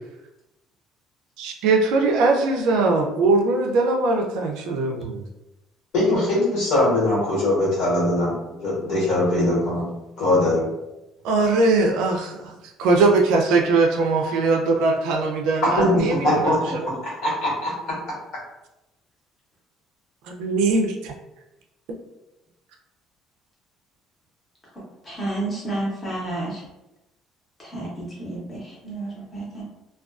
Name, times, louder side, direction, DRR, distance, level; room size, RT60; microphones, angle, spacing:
voice 1, 1.4-5.2 11.2-12.5 12.8-16.9 20.3-21.1, right 3 dB, 85° right, 2 dB, 0.4 m, -21 dB
voice 2, 5.9-9.9 10.2-10.7 15.8-16.7 17.0-18.0, left 1 dB, 65° left, -6 dB, 1.3 m, -21 dB
voice 3, 25.0-26.6 27.6-29.6, right 2 dB, 15° left, -7 dB, 0.8 m, -31 dB
2.4 x 2.2 x 2.3 m, 0.95 s
cardioid pair, 175°, 0 cm